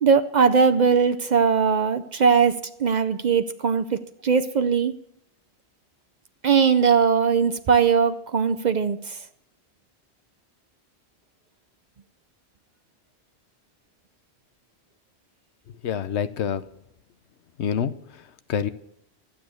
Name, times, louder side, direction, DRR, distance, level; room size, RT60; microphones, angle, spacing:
voice 1, 0.0-4.9 6.4-9.2, right 6 dB, 50° right, 10 dB, 0.6 m, -20 dB
voice 2, 15.8-16.7 17.6-18.7, left 8 dB, 80° left, 13 dB, 1.0 m, -27 dB
12.5 x 8.7 x 6.2 m, 0.75 s
omnidirectional pair, 1.1 m